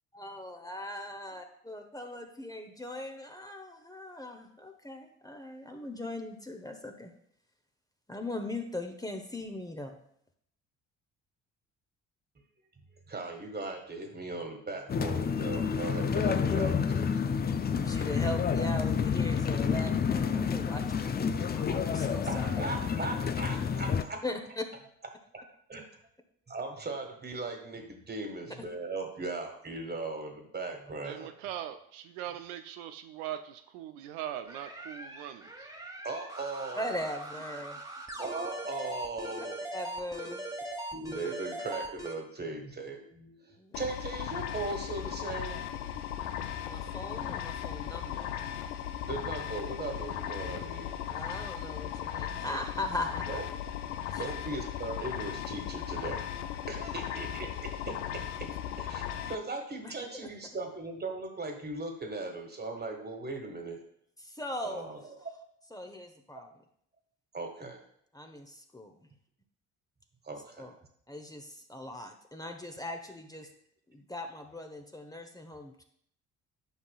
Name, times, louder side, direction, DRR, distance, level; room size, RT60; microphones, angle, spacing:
voice 1, 0.1-7.1 8.1-10.0 17.8-22.7 24.2-24.6 28.6-28.7 36.7-37.8 39.7-40.4 43.6-43.8 46.7-48.3 51.1-53.4 54.1-54.2 59.8-60.3 64.2-64.9 65.7-66.5 68.1-69.1 70.6-70.7 71.1-73.5 73.9-75.8, left 1 dB, 10° left, 4 dB, 0.9 m, -39 dB
voice 2, 13.1-17.4 22.3-24.2 25.7-25.8 26.5-31.3 36.0-37.0 38.2-39.6 40.9-45.6 46.6-46.7 49.1-51.0 52.2-52.3 53.3-53.4 54.2-56.2 56.7-58.5 58.8-63.8 64.6-65.3 67.3-67.8 70.2-70.7, right 3 dB, 25° right, 4 dB, 1.6 m, -38 dB
sound 1, 14.9-24.0, left 6 dB, 25° left, 0.5 m, -29 dB
voice 3, 31.0-35.5, right 11 dB, 75° right, 8 dB, 0.5 m, -40 dB
sound 2, 34.5-42.2, right 1 dB, 10° right, 1.4 m, -41 dB
sound 3, 43.7-59.4, left 10 dB, 75° left, 0.6 m, -37 dB
10.5 x 5.4 x 2.4 m, 0.69 s
hypercardioid pair, 55°, 37 cm